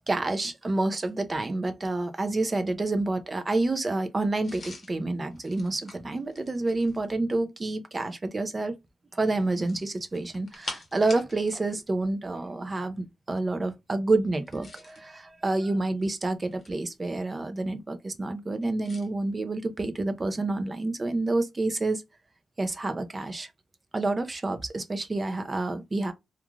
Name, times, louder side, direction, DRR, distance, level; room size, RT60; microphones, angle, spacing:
voice 1, 0.1-8.7 9.1-22.0 22.6-23.5 23.9-26.1, right 2 dB, 20° right, 0.4 m, -28 dB
sound 1, 4.4-7.1 9.5-11.7 11.9-12.1 14.3-15.1 15.8-16.9 18.8-19.1, left 2 dB, 30° left, 0.9 m, -44 dB
2.3 x 2.3 x 3.0 m
wide cardioid pair, 160°, 0 cm